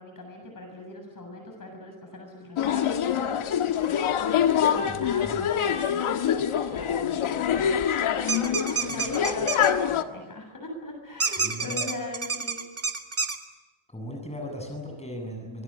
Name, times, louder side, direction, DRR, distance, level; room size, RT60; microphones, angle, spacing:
voice 1, 0.0-7.8 8.2-12.6, left 1 dB, 40° left, 3 dB, 7.2 m, -40 dB
sound 1, 2.6-10.0, left 9 dB, 90° left, 1.7 m, -25 dB
voice 2, 4.9-5.5 11.4-11.9 13.9-15.6, left 1 dB, 15° left, 2 dB, 7.8 m, -37 dB
sound 2, 8.3-9.7 11.2-13.4, right 5 dB, 30° right, 2.3 m, -28 dB
25.5 x 22.0 x 8.8 m, 1.2 s
wide cardioid pair, 125°, 48 cm